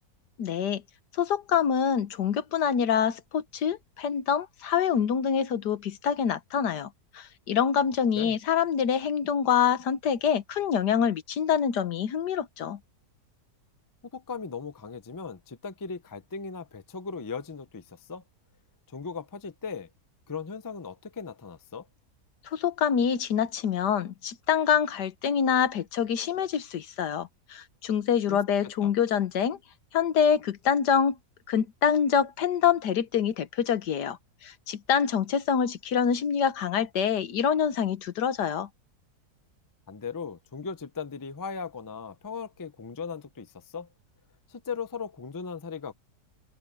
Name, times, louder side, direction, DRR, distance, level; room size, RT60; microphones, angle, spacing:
voice 1, 0.4-0.8 1.2-6.9 7.1-12.8 22.5-29.6 29.9-31.2 31.5-34.2 34.4-38.7, left 8 dB, 85° left, 1.7 m, -26 dB
voice 2, 14.1-18.2 18.9-19.9 20.3-21.9 28.3-28.9 39.9-43.9 44.5-45.9, left 5 dB, 30° left, 0.4 m, -38 dB
open air
omnidirectional pair, 1.7 m